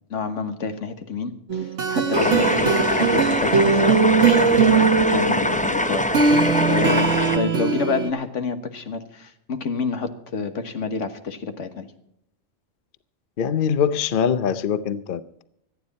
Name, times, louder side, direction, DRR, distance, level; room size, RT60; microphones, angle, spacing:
voice 1, 0.1-11.9, left 4 dB, 90° left, 1.7 m, -29 dB
sound 1, 1.5-8.1, right 5 dB, 85° right, 1.6 m, -20 dB
sound 2, 2.1-7.4, left 1 dB, 10° left, 0.5 m, -23 dB
voice 2, 13.4-15.5, left 7 dB, 50° left, 0.8 m, -23 dB
25.5 x 9.6 x 4.2 m
omnidirectional pair, 1.2 m